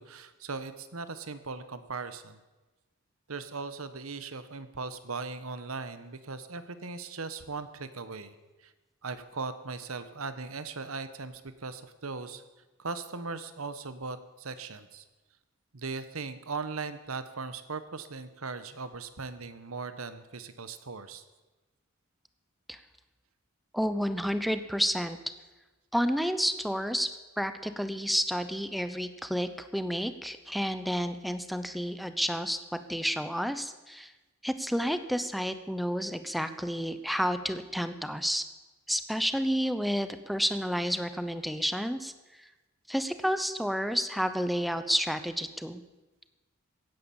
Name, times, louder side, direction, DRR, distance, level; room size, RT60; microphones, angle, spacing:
voice 1, 0.0-2.4 3.3-8.7 9.0-12.4 12.8-15.0 15.7-21.3, right 4 dB, 90° right, 12 dB, 1.2 m, -39 dB
voice 2, 23.7-25.2 25.9-27.1 27.4-34.1 34.4-38.4 38.9-42.1 42.4-42.5 42.9-45.8, equal, ahead, 10 dB, 0.8 m, -30 dB
16.0 x 10.0 x 7.2 m, 1.1 s
head